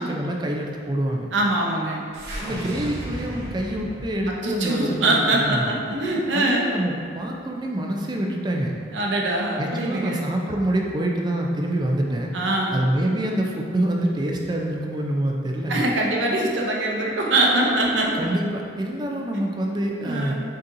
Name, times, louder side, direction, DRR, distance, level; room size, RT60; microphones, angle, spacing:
voice 1, 0.0-1.3 2.4-5.7 6.3-8.7 9.6-12.3 12.7-15.9 18.1-20.3, right 1 dB, 25° right, 0 dB, 0.4 m, -26 dB
voice 2, 1.3-2.0 4.4-6.7 8.9-10.2 12.3-12.9 15.7-18.3 20.0-20.3, right 2 dB, 85° right, -1 dB, 0.7 m, -23 dB
sound 1, 2.1-6.4, equal, 65° right, 1.0 m, -35 dB
6.3 x 2.7 x 2.6 m, 2.3 s
head